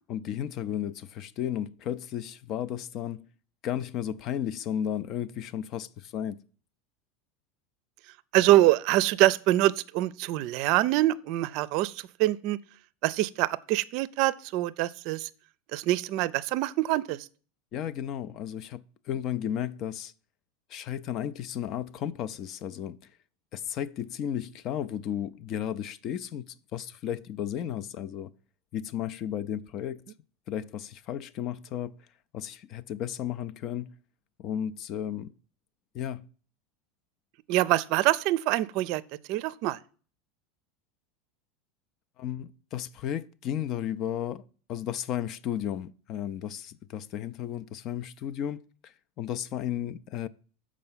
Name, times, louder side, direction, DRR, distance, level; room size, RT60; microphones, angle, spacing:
voice 1, 0.1-3.3 3.6-6.4 17.7-20.1 20.7-23.0 23.5-28.3 28.7-30.0 30.5-32.0 32.3-34.0 34.4-35.3 35.9-36.3 42.2-44.4 44.7-50.3, left 10 dB, 50° left, 0.5 m, -34 dB
voice 2, 8.3-12.6 13.0-15.3 15.7-17.3 37.5-39.0 39.3-39.8, right 16 dB, 60° right, 0.4 m, -25 dB
6.7 x 4.9 x 5.6 m
hypercardioid pair, 95°, 0 cm